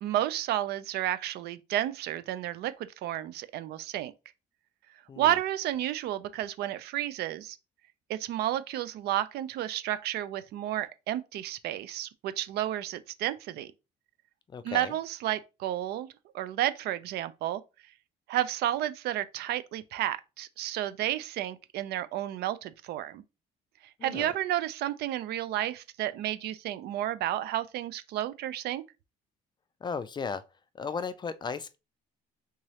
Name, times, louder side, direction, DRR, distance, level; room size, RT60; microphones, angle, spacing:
voice 1, 0.0-4.1 5.2-7.6 8.1-13.7 14.6-16.1 16.3-17.6 18.3-23.2 24.0-28.8, right 12 dB, 70° right, 0.4 m, -31 dB
voice 2, 5.1-5.4 14.5-14.9 24.0-24.3 29.8-30.4 30.8-31.8, left 5 dB, 25° left, 0.3 m, -35 dB
3.6 x 3.1 x 2.8 m
cardioid pair, 110°, 17 cm